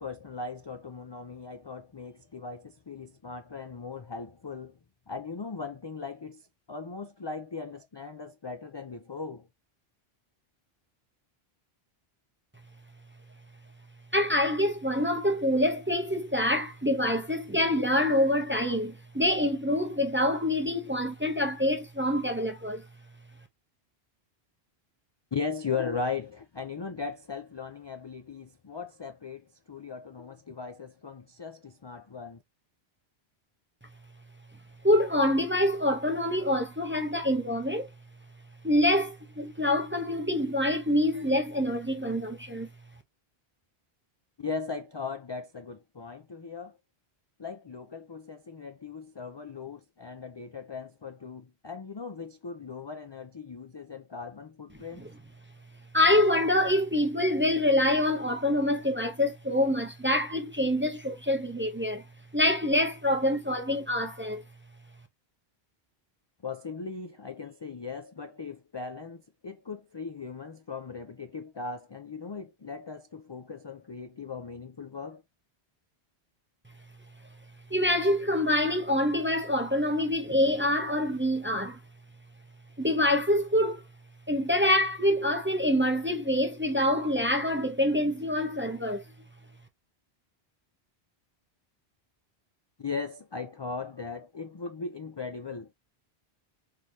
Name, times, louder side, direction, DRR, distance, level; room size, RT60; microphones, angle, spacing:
voice 1, 0.0-4.8 5.1-9.5 25.3-32.4 44.4-46.8 47.4-55.0 66.4-75.2 92.8-95.7, left 5 dB, 40° left, 0.4 m, -38 dB
voice 2, 14.1-22.8 34.8-37.9 38.6-42.7 55.0-55.1 55.9-62.0 62.3-64.4 77.7-81.8 82.8-83.8 84.3-89.0, left 1 dB, 15° right, 0.6 m, -26 dB
3.7 x 3.3 x 2.6 m
omnidirectional pair, 1.1 m